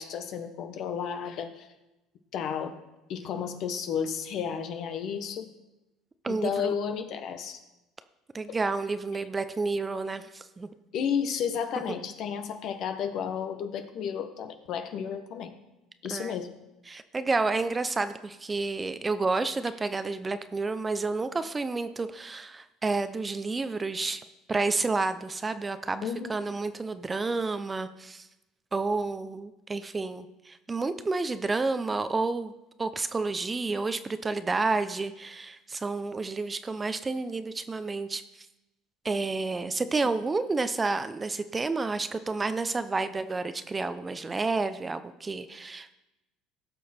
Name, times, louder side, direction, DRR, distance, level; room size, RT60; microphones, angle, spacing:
voice 1, 0.0-1.7 2.3-2.8 3.1-5.5 6.3-7.6 10.9-15.6 16.0-16.5 26.0-26.3 40.0-40.1, left 7 dB, 60° left, 8 dB, 1.2 m, -32 dB
voice 2, 6.2-6.8 8.3-10.7 16.1-16.3 16.9-24.2 24.5-28.3 28.7-32.5 32.8-38.2 39.0-45.9, right 3 dB, 20° right, 11 dB, 0.7 m, -30 dB
17.0 x 6.4 x 4.4 m, 0.99 s
supercardioid pair, 85°, 0 cm